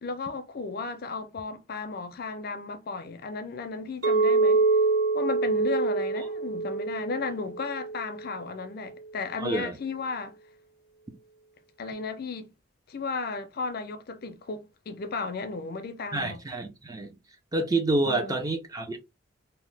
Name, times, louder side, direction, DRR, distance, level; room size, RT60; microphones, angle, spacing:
voice 1, 0.0-4.6 5.1-10.4 11.8-12.5 12.9-16.4 18.0-18.4, left 4 dB, 45° left, 0.4 m, -34 dB
Chink clink, 4.0-8.3, right 3 dB, 65° right, 1.5 m, -25 dB
voice 2, 9.4-9.7 16.1-17.1 17.5-19.0, right 2 dB, 20° right, 0.4 m, -28 dB
2.8 x 2.0 x 3.2 m
head